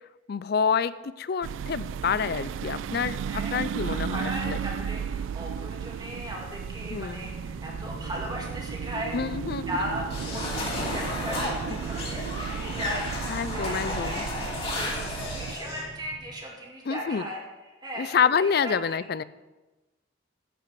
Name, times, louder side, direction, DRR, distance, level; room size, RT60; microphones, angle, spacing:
voice 1, 0.3-3.2 3.5-4.6 6.9-7.2 9.1-9.7 11.7-11.8 13.3-14.3 16.9-17.3 18.0-19.2, left 6 dB, 55° left, 16 dB, 0.4 m, -27 dB
sound 1, 1.4-15.6, right 7 dB, 85° right, 0.3 m, -34 dB
voice 2, 3.3-9.2 9.7-13.1 13.5-14.4 14.7-15.0 15.3-17.4 17.8-18.1 18.4-18.7, equal, 20° right, -1 dB, 1.9 m, -37 dB
sound 2, 6.7-16.4, left 1 dB, 75° left, 1.3 m, -45 dB
sound 3, 10.1-15.8, left 2 dB, 30° left, 3.2 m, -33 dB
11.0 x 5.8 x 7.6 m, 1.1 s
head